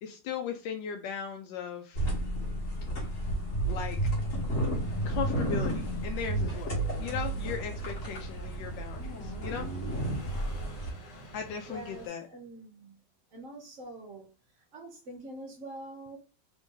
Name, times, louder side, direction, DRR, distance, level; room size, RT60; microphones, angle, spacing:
voice 1, 0.0-2.1 3.6-4.0 5.1-9.7 11.3-12.3, left 7 dB, 85° left, 1.3 m, -37 dB
sound 1, 1.9-10.9, right 1 dB, 50° left, 1.6 m, -32 dB
sound 2, 4.7-12.1, right 1 dB, 70° left, 1.8 m, -49 dB
voice 2, 11.7-13.0 13.3-14.3 14.7-16.2, right 1 dB, 55° right, 0.9 m, -45 dB
3.4 x 2.6 x 3.6 m
omnidirectional pair, 2.0 m